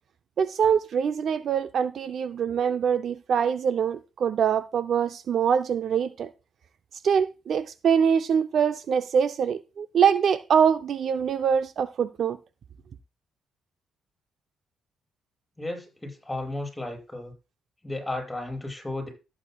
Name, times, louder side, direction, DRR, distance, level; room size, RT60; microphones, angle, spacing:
voice 1, 0.4-6.3 7.0-12.4, right 7 dB, 60° right, 0.6 m, -24 dB
voice 2, 15.6-17.3 17.8-19.1, left 2 dB, 10° left, 6.4 m, -34 dB
14.0 x 8.7 x 2.3 m
cardioid pair, 90°, 0 cm